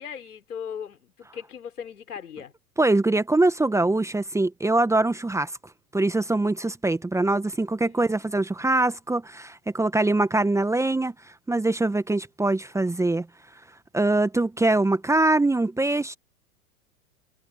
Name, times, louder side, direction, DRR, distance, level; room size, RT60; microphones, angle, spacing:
voice 1, 0.0-2.5 7.8-8.3 8.6-8.7, left 8 dB, 75° left, 4.5 m, -39 dB
voice 2, 2.8-5.5 5.9-11.1 11.5-13.3 13.9-16.1, right 2 dB, 5° right, 1.4 m, -23 dB
figure-of-eight pair, 95°, 45 cm